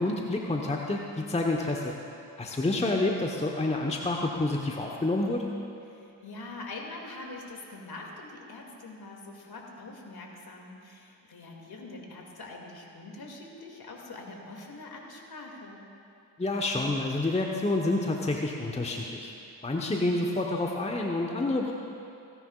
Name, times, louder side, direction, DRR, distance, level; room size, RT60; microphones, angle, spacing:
voice 1, 0.0-1.9 2.4-5.5 16.4-19.3 19.6-21.7, left 2 dB, 15° left, 0 dB, 1.1 m, -28 dB
voice 2, 5.9-15.8, left 2 dB, 45° left, 0 dB, 2.4 m, -44 dB
17.5 x 10.0 x 2.4 m, 2.6 s
hypercardioid pair, 40°, 50 cm